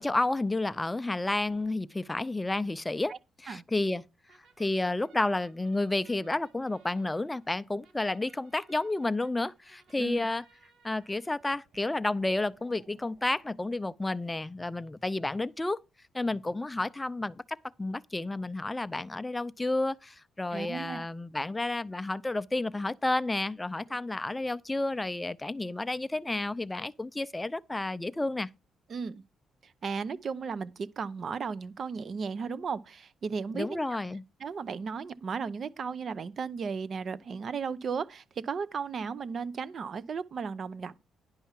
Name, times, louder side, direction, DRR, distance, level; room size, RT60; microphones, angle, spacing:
voice 1, 0.0-4.0 4.6-10.4 10.8-15.8 16.1-28.5 33.5-34.2, left 2 dB, 15° left, 0.5 m, -31 dB
sound 1, 4.3-14.6, right 5 dB, 70° right, 1.7 m, -63 dB
voice 2, 20.5-21.0 28.9-29.2 29.6-33.8 34.4-41.0, right 5 dB, 50° right, 0.7 m, -35 dB
10.5 x 5.5 x 5.8 m
cardioid pair, 90°, 0 cm